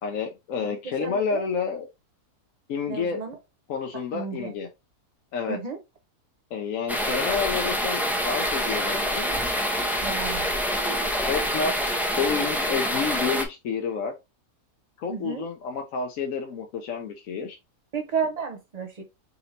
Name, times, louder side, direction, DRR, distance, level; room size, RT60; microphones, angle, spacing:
voice 1, 0.0-1.9 2.7-3.2 3.7-4.7 5.3-5.6 6.5-9.4 11.3-14.1 15.0-17.6, left 5 dB, 65° left, 1.0 m, -29 dB
voice 2, 1.0-1.5 2.9-3.4 4.1-4.5 5.5-5.8 10.0-10.6 15.1-15.4 17.9-19.0, right 5 dB, 85° right, 0.3 m, -32 dB
sound 1, 6.9-13.4, equal, ahead, 0.3 m, -26 dB
4.3 x 2.7 x 4.0 m
omnidirectional pair, 1.7 m